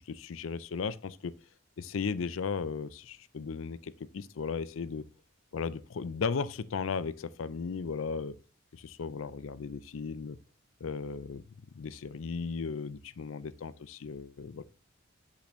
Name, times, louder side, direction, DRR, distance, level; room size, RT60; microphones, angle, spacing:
voice 1, 0.1-1.4 1.8-5.1 5.5-8.4 8.7-10.4 10.8-11.4 11.7-14.6, left 5 dB, 85° left, 0.5 m, -36 dB
7.6 x 6.9 x 3.1 m
head